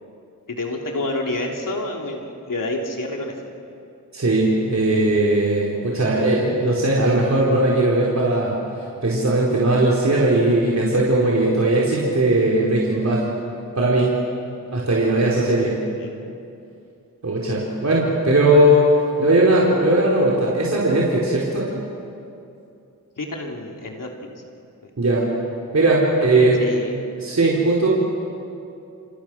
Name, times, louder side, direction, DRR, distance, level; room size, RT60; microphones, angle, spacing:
voice 1, 0.5-3.3 15.9-16.1 23.2-24.1 26.2-27.0, left 2 dB, 70° left, 0 dB, 3.6 m, -28 dB
voice 2, 4.1-8.6 9.0-13.2 13.8-14.1 14.7-15.8 17.2-18.9 19.2-21.7 25.0-25.3 25.7-26.6 27.2-27.9, right 1 dB, 50° right, -4 dB, 4.3 m, -18 dB
28.0 x 26.5 x 6.2 m, 2.6 s
cardioid pair, 50°, 34 cm